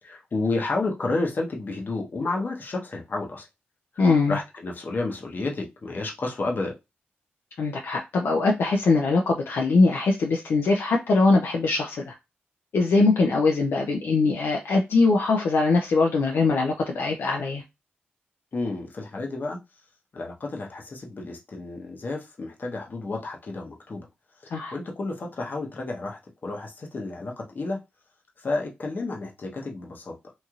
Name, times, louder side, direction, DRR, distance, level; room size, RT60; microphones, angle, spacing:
voice 1, 0.0-3.5 3.9-6.7 18.5-19.6 20.1-24.1 24.4-27.8 28.4-30.1, left 3 dB, 55° left, 0.9 m, -31 dB
voice 2, 4.0-4.4 7.6-12.1 12.7-17.6 24.5-24.7, left 3 dB, 75° left, 0.5 m, -22 dB
3.0 x 2.6 x 2.4 m
cardioid pair, 55°, 4 cm